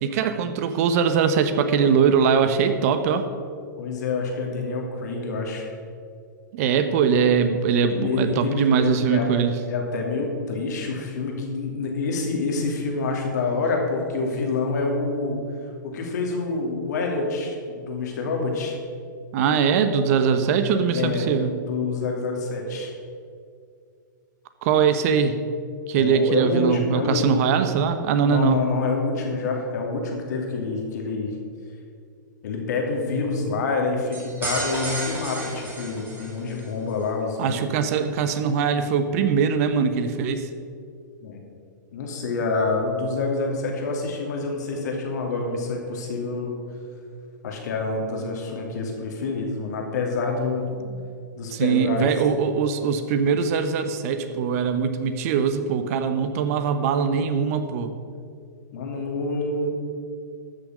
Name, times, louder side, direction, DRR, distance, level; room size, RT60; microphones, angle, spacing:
voice 1, 0.0-3.3 6.5-9.5 19.3-21.5 24.6-25.4 25.9-28.6 37.4-40.5 50.7-51.1 51.5-57.9, right 6 dB, 50° right, 9 dB, 1.0 m, -22 dB
voice 2, 3.8-5.6 7.8-9.3 9.7-15.4 15.8-18.8 20.9-21.2 21.6-22.9 25.9-27.2 28.3-31.3 32.4-37.6 41.2-41.4 41.9-46.6 47.4-50.6 51.4-52.1 58.7-59.7, left 3 dB, 60° left, 1 dB, 2.6 m, -27 dB
sound 1, 34.1-36.7, right 2 dB, 20° right, 3.2 m, -32 dB
13.0 x 6.7 x 6.2 m, 2.3 s
hypercardioid pair, 110°, 10 cm